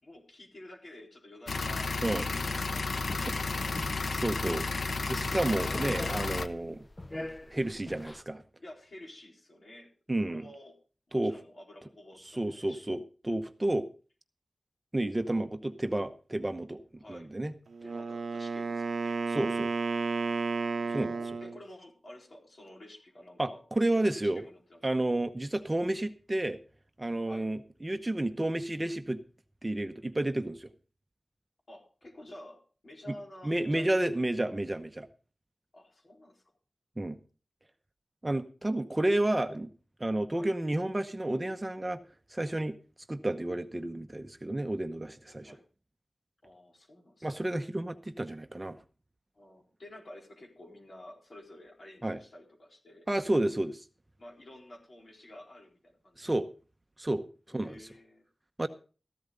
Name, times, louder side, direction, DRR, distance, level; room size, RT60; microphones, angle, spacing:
voice 1, 0.0-2.0 2.2-4.0 6.3-6.6 8.6-9.9 10.3-10.8 11.1-12.9 17.0-17.3 17.8-19.2 20.8-23.6 23.9-24.8 27.2-27.5 31.7-34.2 35.7-36.4 40.3-40.5 45.4-45.6 46.4-47.5 49.3-53.1 54.2-56.3 57.5-58.3, left 1 dB, 55° left, 0 dB, 4.2 m, -51 dB
sound 1, 1.5-6.5, left 3 dB, 80° left, 0.9 m, -32 dB
sound 2, 3.0-8.2, left 1 dB, 25° left, 0.7 m, -42 dB
voice 2, 4.1-4.7 5.1-6.8 7.5-8.4 10.1-10.5 11.1-11.3 12.3-13.0 13.2-13.9 14.9-16.8 17.1-17.5 19.3-19.7 20.9-21.2 23.4-24.4 24.8-26.6 27.0-29.2 29.6-30.7 33.4-35.1 37.0-37.2 38.2-39.7 40.0-42.0 42.3-42.8 43.1-45.5 47.2-48.8 52.0-52.2 53.1-53.8 56.2-56.5 57.0-57.8 58.6-58.7, right 1 dB, 20° right, 9 dB, 0.9 m, -31 dB
Wind instrument woodwind instrument, 17.7-21.6, right 4 dB, 75° right, 0.6 m, -32 dB
14.5 x 12.0 x 3.9 m, 0.37 s
wide cardioid pair, 85°, 0 cm